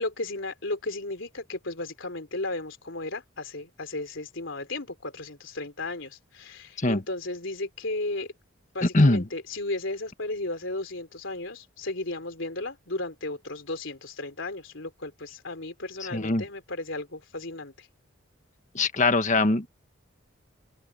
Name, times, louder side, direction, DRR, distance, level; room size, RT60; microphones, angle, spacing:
voice 1, 0.0-8.3 8.7-17.9, left 2 dB, 70° left, 3.8 m, -34 dB
voice 2, 8.8-9.2 16.1-16.4 18.7-19.7, left 2 dB, 40° left, 1.6 m, -22 dB
head